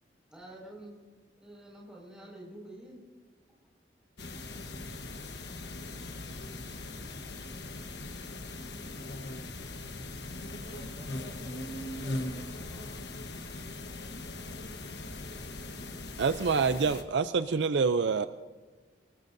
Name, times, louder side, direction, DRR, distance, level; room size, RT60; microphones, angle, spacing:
voice 1, 0.3-1.0 1.4-3.0, right 1 dB, 5° right, -3 dB, 5.3 m, -49 dB
sound 1, 4.2-17.0, left 2 dB, 65° left, 1.2 m, -40 dB
voice 2, 10.6-12.9, right 1 dB, 25° right, -4 dB, 2.2 m, -55 dB
voice 3, 16.2-18.3, right 5 dB, 75° right, 12 dB, 0.5 m, -26 dB
24.0 x 20.0 x 2.7 m, 1.4 s
head